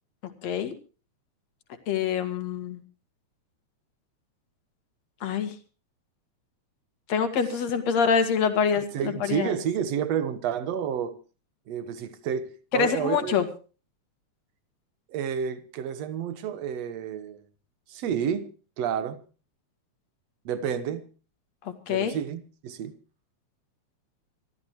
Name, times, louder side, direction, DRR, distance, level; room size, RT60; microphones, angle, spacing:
voice 1, 0.4-0.7 1.9-2.8 5.2-5.5 7.1-8.9 9.2-9.5 12.7-13.5 21.9-22.2, left 7 dB, 65° left, 3.0 m, -25 dB
voice 2, 8.9-11.1 11.7-13.4 15.1-17.4 17.9-18.5 18.8-19.2 20.5-21.0 21.9-22.9, right 8 dB, 65° right, 2.3 m, -30 dB
26.0 x 14.0 x 3.1 m
omnidirectional pair, 3.3 m